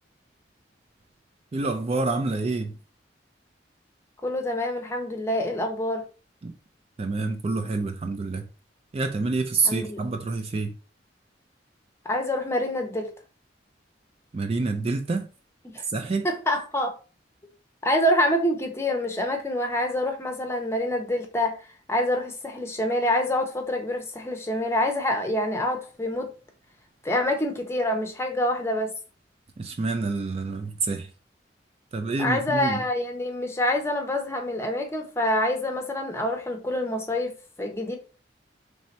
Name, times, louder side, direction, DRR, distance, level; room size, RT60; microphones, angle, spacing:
voice 1, 1.5-2.8 6.4-6.5 7.0-8.5 8.9-10.7 14.3-15.3 15.8-16.3 29.6-31.1 31.9-32.8, right 3 dB, 35° right, 0.3 m, -27 dB
voice 2, 4.2-6.0 9.7-10.0 12.0-13.1 15.7-15.8 16.2-16.9 17.8-21.5 21.9-26.3 27.0-28.9 32.2-37.3 37.6-38.0, left 1 dB, 15° left, 0.7 m, -26 dB
3.2 x 2.8 x 4.3 m
head